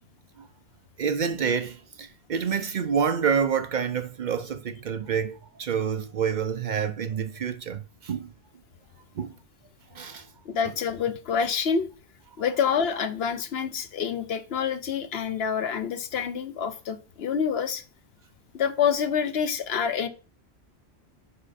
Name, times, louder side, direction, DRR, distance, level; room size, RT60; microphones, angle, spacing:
voice 1, 1.0-8.3 9.2-9.3 9.9-10.3, right 7 dB, 55° right, 0.6 m, -28 dB
voice 2, 10.5-11.9 12.4-17.8 18.5-20.1, left 7 dB, 70° left, 1.0 m, -27 dB
5.7 x 5.1 x 4.0 m
omnidirectional pair, 1.1 m